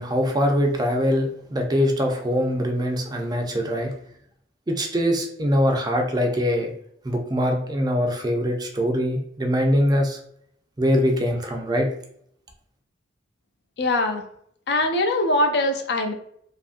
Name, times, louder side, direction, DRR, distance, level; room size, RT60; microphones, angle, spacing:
voice 1, 0.0-3.9 4.7-6.7 7.0-10.2 10.8-11.9, equal, 20° right, 3 dB, 0.4 m, -23 dB
voice 2, 13.8-14.2 14.7-16.1, left 2 dB, 65° left, 5 dB, 0.5 m, -22 dB
2.6 x 2.5 x 2.5 m, 0.67 s
head